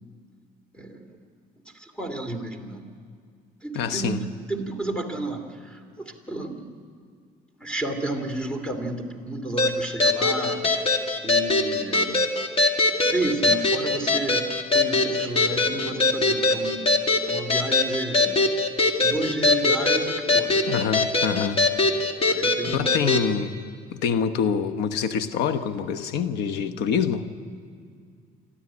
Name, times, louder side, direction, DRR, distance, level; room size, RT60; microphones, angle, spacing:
voice 1, 1.8-2.8 3.6-6.7 7.6-10.7 11.2-12.3 13.0-16.8 17.3-18.4 19.0-20.6 22.3-22.9, right 2 dB, 5° left, 6 dB, 2.8 m, -31 dB
voice 2, 3.7-4.2 20.7-21.6 22.7-23.5 24.0-27.3, left 7 dB, 85° left, 10 dB, 1.2 m, -25 dB
sound 1, 9.6-23.3, left 3 dB, 35° left, 1.9 m, -22 dB
27.0 x 13.0 x 9.8 m, 2.1 s
cardioid pair, 110°, 17 cm